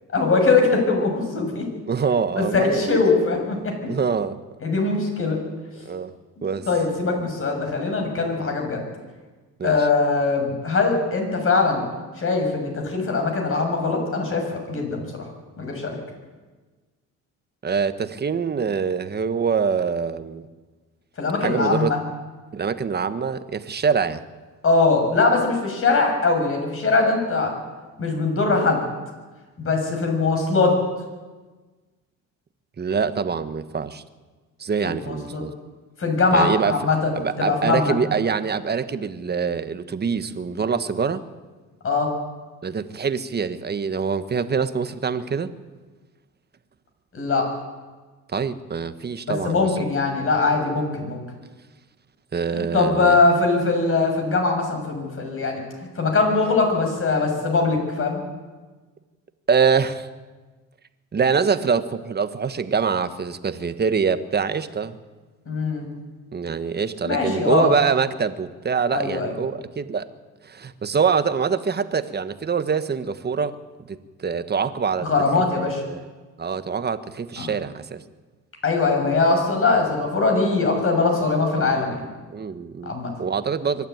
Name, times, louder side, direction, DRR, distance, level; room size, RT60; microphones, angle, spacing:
voice 1, 0.1-1.6 2.3-3.7 4.6-5.4 6.4-8.8 9.6-11.9 12.2-15.1 15.6-16.0 21.2-22.0 24.6-27.5 28.0-28.8 29.6-30.8 34.9-35.4 36.0-37.9 41.8-42.1 47.1-47.5 49.3-51.2 52.5-55.6 56.0-58.2 65.5-65.9 67.0-67.7 68.9-69.3 75.0-75.8 77.4-77.5 78.6-82.0 82.8-83.1, left 3 dB, 40° left, 3 dB, 6.7 m, -21 dB
voice 2, 1.9-3.0 3.9-4.4 5.8-6.1 6.4-6.7 9.6-9.9 17.6-20.4 21.4-21.9 22.5-24.2 32.8-34.0 34.6-35.5 36.3-36.8 37.1-41.2 42.6-45.5 48.3-49.7 52.3-53.2 59.5-60.1 61.1-65.0 66.3-70.1 70.4-73.6 73.9-75.1 75.9-76.0 76.4-78.0 82.3-82.9 83.2-83.9, right 6 dB, 30° right, 12 dB, 1.3 m, -24 dB
23.5 x 12.5 x 9.4 m, 1.3 s
cardioid pair, 95°, 32 cm